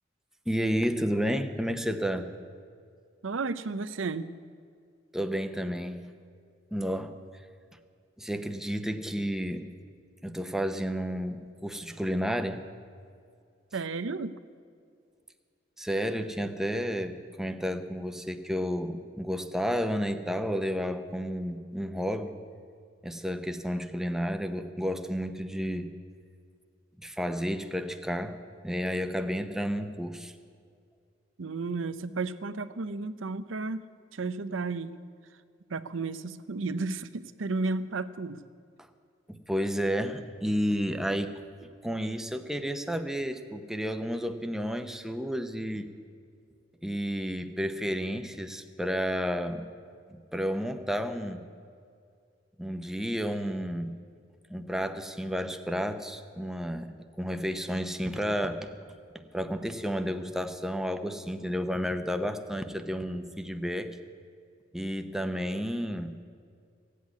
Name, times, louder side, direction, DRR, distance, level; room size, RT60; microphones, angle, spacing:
voice 1, 0.5-2.3 5.1-6.0 6.7-7.1 8.2-9.6 10.2-12.6 15.8-22.3 23.0-25.9 27.0-28.3 28.6-30.3 39.3-45.9 46.8-49.7 50.1-51.5 52.6-53.9 54.5-58.6 59.1-63.9 64.7-66.1, equal, 5° right, 7 dB, 0.8 m, -31 dB
voice 2, 3.2-4.3 13.7-14.4 31.4-33.8 34.1-34.9 35.7-38.4, right 3 dB, 80° right, 14 dB, 0.7 m, -33 dB
16.0 x 8.4 x 9.5 m, 2.2 s
head